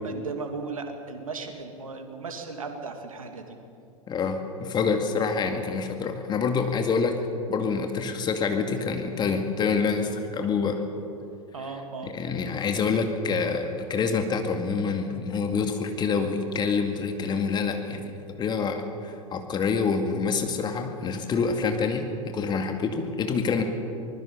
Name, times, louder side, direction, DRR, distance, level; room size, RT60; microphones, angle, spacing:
voice 1, 0.0-3.6 11.5-12.1, right 4 dB, 75° right, 5 dB, 2.6 m, -36 dB
voice 2, 4.1-7.2 7.5-10.8 12.0-18.1 18.4-23.6, left 5 dB, 25° left, 5 dB, 2.2 m, -27 dB
25.0 x 20.0 x 5.6 m, 2.7 s
figure-of-eight pair, 90°, 18 cm